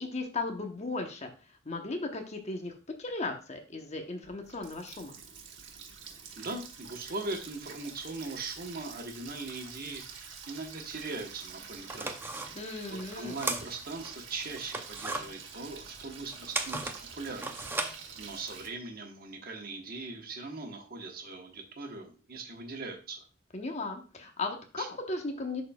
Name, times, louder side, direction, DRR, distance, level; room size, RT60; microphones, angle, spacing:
voice 1, 0.0-5.2 12.5-13.4 23.5-25.6, left 3 dB, 35° left, 4 dB, 1.0 m, -36 dB
Water tap faucet, 4.2-18.7, right 6 dB, 70° right, 1.2 m, -47 dB
voice 2, 6.4-12.2 12.9-16.8 17.2-17.6 18.2-23.2 24.8-24.9, right 3 dB, 50° right, 3 dB, 1.2 m, -40 dB
sound 1, 11.3-11.4 11.8-14.1 14.5-18.7, right 2 dB, 10° right, 0.6 m, -36 dB
11.5 x 4.2 x 2.3 m, 0.35 s
head